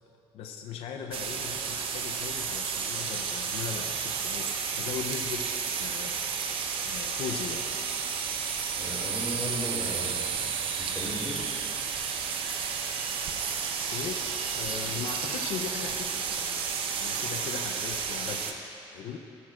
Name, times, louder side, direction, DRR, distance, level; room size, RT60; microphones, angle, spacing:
voice 1, 0.3-6.3 6.8-7.7 13.9-14.3 14.5-16.7 16.9-19.2, left 7 dB, 75° left, 4 dB, 0.7 m, -39 dB
sound 1, 1.1-18.5, right 6 dB, 60° right, 0.8 m, -32 dB
voice 2, 8.8-11.5, left 1 dB, 5° left, -6 dB, 2.4 m, -37 dB
15.0 x 12.5 x 2.5 m, 2.8 s
cardioid pair, 150°, 10 cm